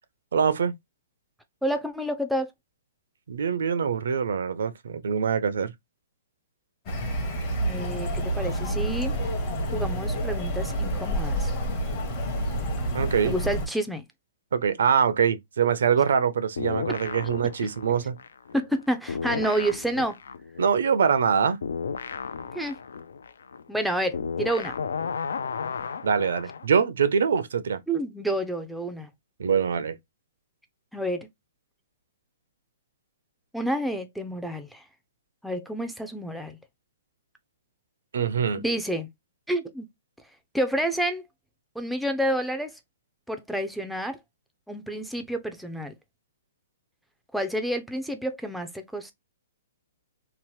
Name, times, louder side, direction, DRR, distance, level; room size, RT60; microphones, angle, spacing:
voice 1, 0.3-0.7 3.3-5.7 12.9-13.3 14.5-18.2 20.6-21.6 26.0-27.8 29.4-30.0 38.1-38.6, right 7 dB, 75° right, 0.5 m, -24 dB
voice 2, 1.6-2.5 7.6-9.1 9.7-11.5 13.2-14.0 18.5-20.2 22.5-22.8 23.7-24.7 27.9-29.1 30.9-31.3 33.5-34.8 35.4-36.6 38.6-39.1 39.5-39.9 40.5-41.2 41.8-42.8 43.3-44.2 44.7-45.9 47.3-49.1, right 1 dB, ahead, 0.4 m, -29 dB
sound 1, 6.9-13.7, right 1 dB, 30° left, 0.8 m, -28 dB
sound 2, 16.6-18.8 19.1-26.7, left 6 dB, 85° left, 0.4 m, -34 dB
2.9 x 2.1 x 3.0 m
hypercardioid pair, 160°, 0 cm